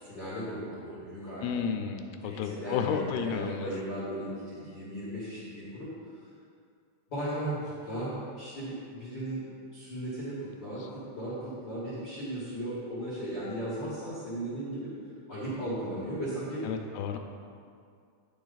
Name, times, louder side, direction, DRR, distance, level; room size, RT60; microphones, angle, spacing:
voice 1, 0.0-1.6 2.2-5.9 7.1-9.4 9.7-14.9 15.3-16.6, right 1 dB, 60° left, -10 dB, 1.1 m, -36 dB
voice 2, 1.4-3.7 16.6-17.2, left 7 dB, 80° left, 6 dB, 2.4 m, -32 dB
9.2 x 7.1 x 4.0 m, 2.3 s
omnidirectional pair, 4.9 m